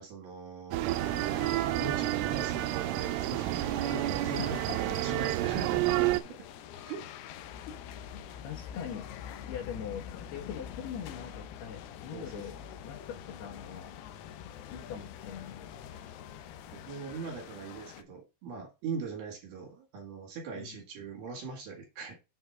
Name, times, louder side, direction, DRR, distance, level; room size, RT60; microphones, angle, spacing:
voice 1, 0.0-6.4 6.9-7.0 8.3-8.4 12.1-12.4 15.9-16.1 16.7-22.2, right 5 dB, 60° right, 3.5 m, -41 dB
sound 1, 0.7-6.2, right 16 dB, 85° right, 3.0 m, -30 dB
sound 2, 0.9-18.0, left 9 dB, 85° left, 2.3 m, -45 dB
voice 2, 4.4-5.0 8.1-9.1 9.4-12.6 12.8-14.0 14.7-15.8 20.6-20.8, left 7 dB, 65° left, 3.0 m, -42 dB
7.8 x 4.3 x 4.7 m
omnidirectional pair, 5.6 m